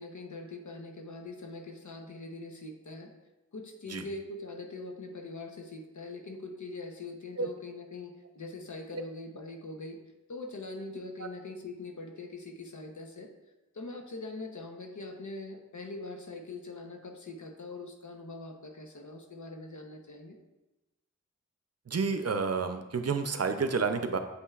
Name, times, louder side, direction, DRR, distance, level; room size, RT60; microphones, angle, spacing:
voice 1, 0.0-3.1 3.5-10.0 10.3-13.3 13.7-20.4, left 2 dB, 75° left, 3 dB, 0.9 m, -42 dB
voice 2, 21.9-24.2, right 5 dB, 55° right, 8 dB, 0.6 m, -29 dB
8.2 x 5.5 x 2.4 m, 1.0 s
wide cardioid pair, 45°, 29 cm